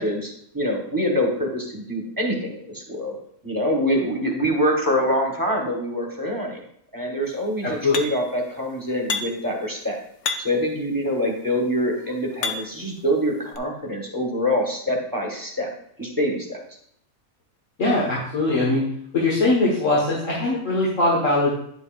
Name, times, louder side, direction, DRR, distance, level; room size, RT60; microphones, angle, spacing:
voice 1, 0.0-3.1 3.4-6.6 6.9-10.0 10.4-15.7 16.0-16.6, equal, 15° right, 0 dB, 1.3 m, -25 dB
voice 2, 7.6-8.0 17.8-18.8 19.1-21.5, left 2 dB, 65° left, -5 dB, 1.9 m, -21 dB
sound 1, 7.9-8.4 9.1-9.5 10.2-10.7 11.5-12.9 13.5-13.6, left 5 dB, 90° left, 1.2 m, -30 dB
9.7 x 7.5 x 2.5 m, 0.70 s
omnidirectional pair, 1.4 m